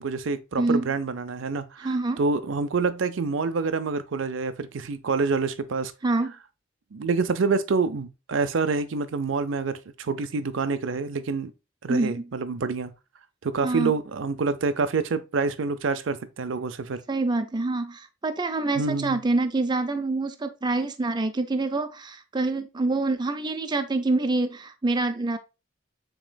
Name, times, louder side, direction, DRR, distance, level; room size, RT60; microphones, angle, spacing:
voice 1, 0.0-5.9 6.9-11.5 11.8-12.9 13.4-17.0 18.8-19.2, right 4 dB, 75° right, 0.5 m, -27 dB
voice 2, 0.6-0.9 1.8-2.2 6.0-6.3 11.9-12.3 13.6-13.9 17.1-25.4, right 2 dB, 25° right, 0.5 m, -26 dB
7.3 x 3.0 x 2.2 m
head